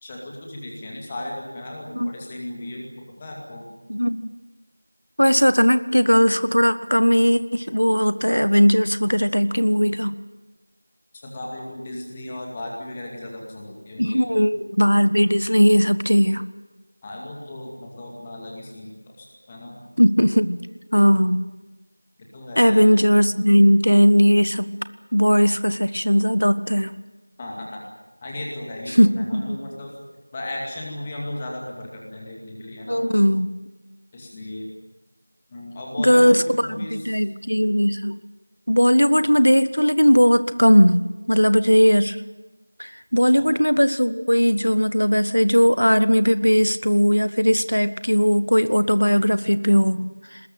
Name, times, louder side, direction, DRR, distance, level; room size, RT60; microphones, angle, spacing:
voice 1, 0.0-3.7 11.1-14.6 17.0-19.8 22.3-22.9 27.4-27.8 28.2-29.9 30.3-33.0 34.1-34.7 35.5-37.2 43.2-43.5, left 1 dB, 10° left, -1 dB, 2.3 m, -36 dB
voice 2, 3.9-4.3 5.2-10.1 14.0-16.5 20.0-20.7 20.9-21.5 22.6-24.7 25.1-26.9 29.0-29.6 32.9-33.5 36.0-38.2 38.7-42.2 42.8-50.4, equal, 85° left, 13 dB, 1.4 m, -18 dB
24.0 x 20.5 x 9.2 m, 1.1 s
figure-of-eight pair, 175°, 0 cm